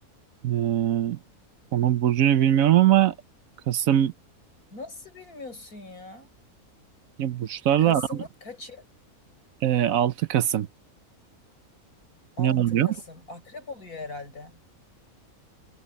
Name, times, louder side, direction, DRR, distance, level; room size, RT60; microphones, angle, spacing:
voice 1, 0.4-1.2 1.7-3.1 3.7-4.1 7.2-8.2 9.6-10.7 12.4-12.9, right 11 dB, 70° right, 1.1 m, -21 dB
voice 2, 4.7-6.3 7.8-8.9 12.4-14.6, left 3 dB, 75° left, 6.4 m, -40 dB
omnidirectional pair, 1.6 m